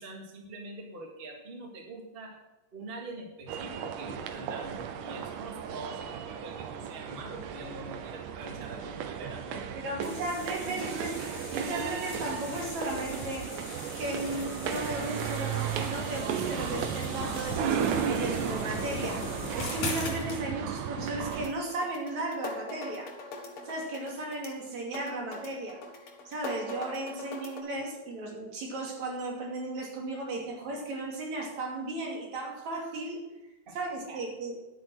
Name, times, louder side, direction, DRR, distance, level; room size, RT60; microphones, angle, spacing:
voice 1, 0.0-2.4 2.7-10.2 10.6-10.9 33.7-34.2, right 2 dB, 20° right, 0 dB, 1.8 m, -44 dB
sound 1, 3.5-21.5, right 8 dB, 85° right, 2.4 m, -35 dB
voice 2, 9.8-11.1 11.5-13.7 13.9-19.2 19.5-23.1 23.7-25.8 26.3-33.3 33.7-34.6, right 2 dB, 65° right, -1 dB, 3.9 m, -35 dB
sound 2, 10.0-20.4, left 2 dB, 70° left, 4.7 m, -39 dB
sound 3, 21.0-27.6, left 2 dB, 50° left, 2.3 m, -42 dB
11.0 x 9.2 x 6.4 m, 0.99 s
omnidirectional pair, 3.5 m